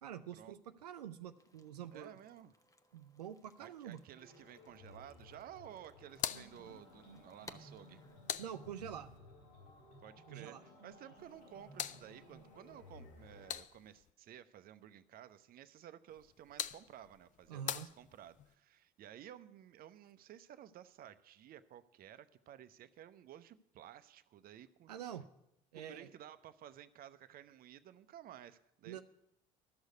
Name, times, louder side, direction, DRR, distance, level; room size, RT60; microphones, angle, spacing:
voice 1, 0.0-2.2 2.9-4.0 8.4-9.1 10.3-10.6 17.5-17.9 24.9-25.3 25.7-26.1 28.9-29.0, right 9 dB, 90° right, 9 dB, 0.5 m, -46 dB
sound 1, 1.4-8.2, left 2 dB, 15° left, 0.9 m, -62 dB
voice 2, 1.9-2.5 3.6-8.0 10.0-25.1 25.7-29.0, right 11 dB, 50° right, 12 dB, 0.7 m, -55 dB
sound 2, 4.2-13.5, left 1 dB, 80° left, 3.9 m, -58 dB
sound 3, 6.1-9.2 11.2-14.1 16.1-18.5, left 10 dB, 40° left, 0.5 m, -46 dB
12.5 x 6.4 x 9.4 m, 0.83 s
hypercardioid pair, 65°, 20 cm